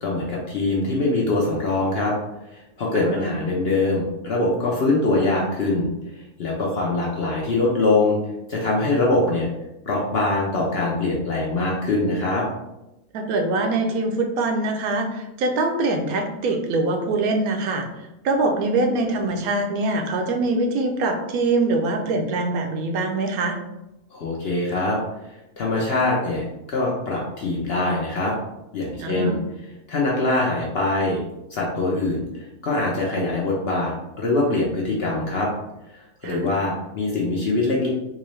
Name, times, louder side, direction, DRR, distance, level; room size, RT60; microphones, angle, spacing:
voice 1, 0.0-2.1 2.5-5.9 6.4-8.2 8.5-9.5 9.8-12.4 24.1-25.0 25.6-28.3 28.7-29.4 29.9-31.2 31.5-35.5 35.9-37.9, left 2 dB, 55° left, -3 dB, 0.7 m, -23 dB
voice 2, 2.9-3.3 13.1-17.9 18.2-23.6 29.0-29.4 36.2-36.4, right 2 dB, 75° right, 4 dB, 1.0 m, -23 dB
3.7 x 2.6 x 3.1 m, 0.94 s
omnidirectional pair, 1.6 m